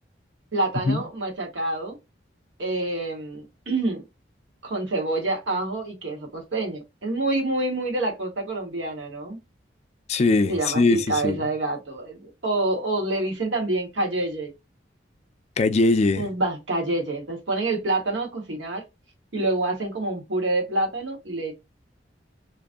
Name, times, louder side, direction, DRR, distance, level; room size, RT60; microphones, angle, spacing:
voice 1, 0.5-2.0 2.6-4.0 4.6-9.4 10.5-14.5 16.2-18.8 19.3-21.5, right 2 dB, 85° right, 1.3 m, -27 dB
voice 2, 10.1-11.4 15.6-16.3, left 3 dB, 35° left, 0.4 m, -21 dB
3.0 x 2.6 x 3.6 m
head